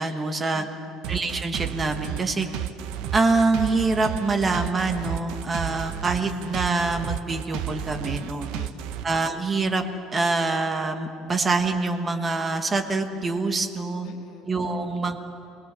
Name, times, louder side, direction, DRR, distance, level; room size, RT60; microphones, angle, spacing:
voice 1, 0.0-0.7 1.1-2.5 3.1-8.5 9.0-9.8 10.1-14.1 14.5-15.2, right 3 dB, 15° right, 5 dB, 1.2 m, -25 dB
voice 2, 0.5-1.0 8.5-9.0 14.0-15.1, left 9 dB, 50° left, 4 dB, 1.2 m, -47 dB
sound 1, 1.0-9.0, right 10 dB, 75° right, 0.9 m, -32 dB
28.0 x 21.5 x 7.4 m, 2.7 s
cardioid pair, 170°, 0 cm